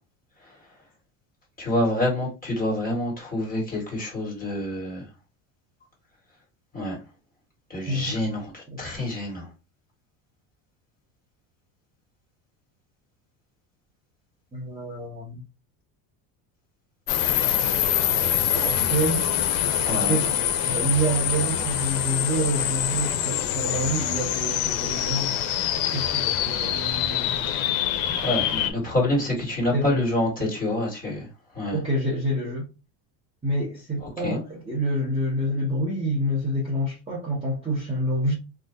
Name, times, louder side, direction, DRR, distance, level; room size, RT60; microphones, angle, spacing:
voice 1, 1.6-5.1 6.7-7.0 7.7-9.5 19.8-20.2 28.2-31.3 31.5-31.8 34.0-34.4, left 1 dB, 20° left, 1.7 m, -27 dB
voice 2, 14.5-15.4 18.5-19.2 19.9-20.3 20.6-25.4 25.9-27.5 29.7-30.0 31.7-32.7 33.4-38.3, right 1 dB, 10° right, 0.8 m, -27 dB
sound 1, 17.1-28.7, left 10 dB, 70° left, 0.6 m, -25 dB
2.6 x 2.2 x 3.4 m
cardioid pair, 135°, 49 cm